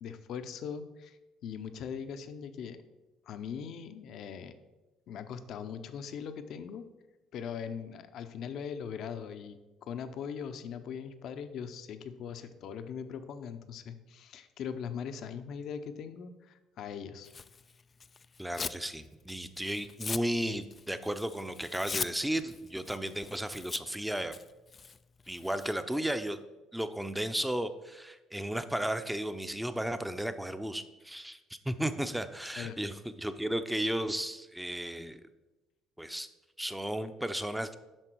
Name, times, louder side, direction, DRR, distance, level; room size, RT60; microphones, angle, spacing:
voice 1, 0.0-2.8 3.3-4.5 5.1-6.9 7.3-17.3 32.6-32.8, left 7 dB, 60° left, 10 dB, 0.7 m, -40 dB
Tearing, 17.3-18.8 19.2-25.7, left 5 dB, 35° left, 0.3 m, -41 dB
voice 2, 18.4-24.3 25.3-26.4 26.7-35.2 36.0-36.3 36.6-37.7, right 1 dB, 5° right, 10 dB, 0.7 m, -34 dB
8.9 x 6.0 x 4.6 m, 1.1 s
hypercardioid pair, 65°, 0 cm